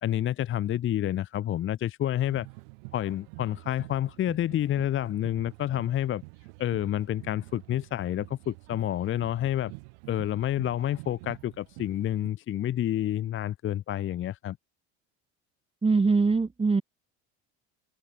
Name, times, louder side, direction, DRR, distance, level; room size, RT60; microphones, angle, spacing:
voice 1, 0.0-2.5 2.9-6.2 6.6-9.7 10.1-14.6, left 12 dB, 35° left, 0.8 m, -29 dB
sound 1, 2.2-12.3, right 36 dB, 80° right, 4.9 m, -48 dB
voice 2, 15.8-16.8, right 4 dB, 15° right, 2.4 m, -22 dB
supercardioid pair, 105°, 33 cm